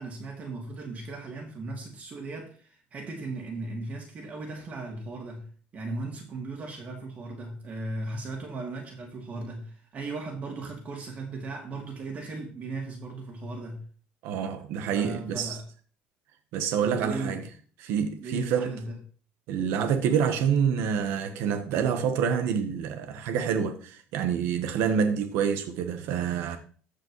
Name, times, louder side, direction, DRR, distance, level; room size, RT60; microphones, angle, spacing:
voice 1, 0.0-13.8 14.9-15.6 16.8-17.4 17.9-19.0, right 3 dB, 35° right, 2.4 m, -37 dB
voice 2, 14.2-15.6 16.5-17.4 17.8-18.7 19.5-26.6, right 7 dB, 75° right, 1.1 m, -27 dB
14.5 x 5.1 x 3.1 m
cardioid pair, 125°, 4 cm